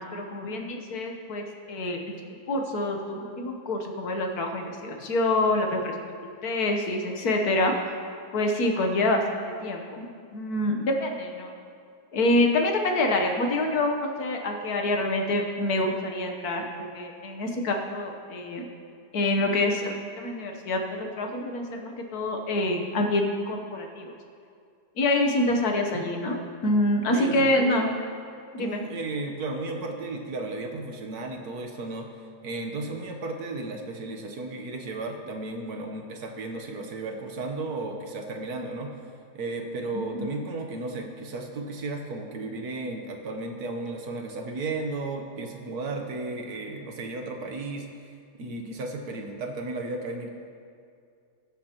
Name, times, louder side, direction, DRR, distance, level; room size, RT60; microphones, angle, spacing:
voice 1, 0.1-2.1 2.5-6.1 6.4-7.9 8.3-11.5 12.1-18.6 19.1-24.1 25.0-27.9 28.5-28.8 40.1-40.3, left 1 dB, 65° left, 3 dB, 1.5 m, -26 dB
voice 2, 27.1-27.8 28.6-32.1 32.4-38.9 39.3-47.9 48.4-50.3, right 2 dB, 65° right, 3 dB, 1.5 m, -34 dB
21.0 x 7.6 x 2.9 m, 2.3 s
omnidirectional pair, 1.8 m